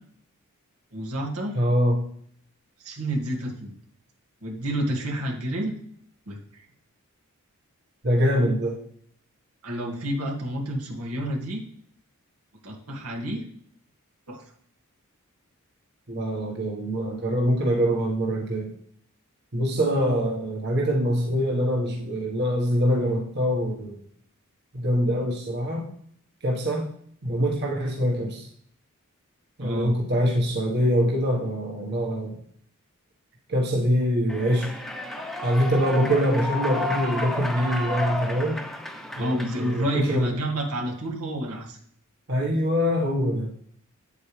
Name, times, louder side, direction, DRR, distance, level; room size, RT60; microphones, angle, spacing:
voice 1, 0.9-1.6 2.8-3.7 4.4-5.8 6.3-6.6 9.6-11.6 12.6-13.4 14.3-14.4 29.6-29.9 39.2-41.8, right 1 dB, 85° right, -1 dB, 2.1 m, -29 dB
voice 2, 1.5-2.0 8.0-8.8 16.1-18.7 19.5-24.0 24.7-25.9 26.4-26.9 27.2-28.5 29.6-32.4 33.5-34.7 35.4-38.6 39.2-40.4 42.3-43.5, equal, 50° right, -1 dB, 1.4 m, -24 dB
Human voice / Clapping / Cheering, 34.3-40.3, left 1 dB, ahead, 0.8 m, -32 dB
9.0 x 8.2 x 3.3 m, 0.62 s
head